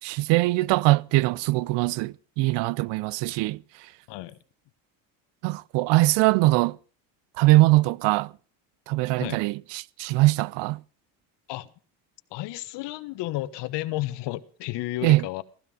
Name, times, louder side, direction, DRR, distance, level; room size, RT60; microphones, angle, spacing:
voice 1, 0.0-3.6 5.4-6.8 7.4-8.3 8.9-10.8 15.0-15.2, right 19 dB, 75° right, 0.7 m, -22 dB
voice 2, 4.1-4.4 9.2-9.4 11.5-11.7 12.3-15.4, left 16 dB, 70° left, 1.3 m, -32 dB
16.0 x 15.0 x 5.3 m
supercardioid pair, 95°, 43 cm